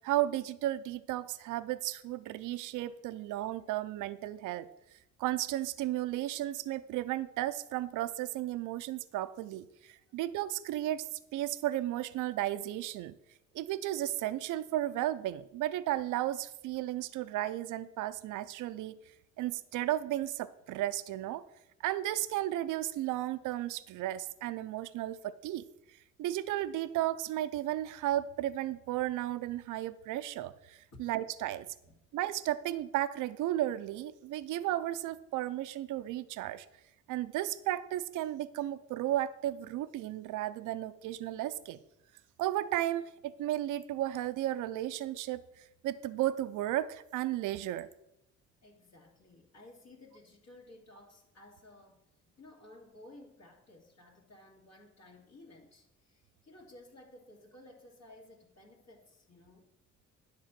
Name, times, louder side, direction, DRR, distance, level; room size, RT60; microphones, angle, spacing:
voice 1, 0.0-4.7 5.2-13.1 13.5-19.0 19.4-21.4 21.8-25.6 26.2-31.7 32.1-36.7 37.1-41.8 42.4-47.9, right 14 dB, 85° right, 14 dB, 0.5 m, -34 dB
voice 2, 48.6-59.7, left 1 dB, 65° left, -3 dB, 2.2 m, -56 dB
10.5 x 4.2 x 7.3 m, 0.87 s
cardioid pair, 90°, 30 cm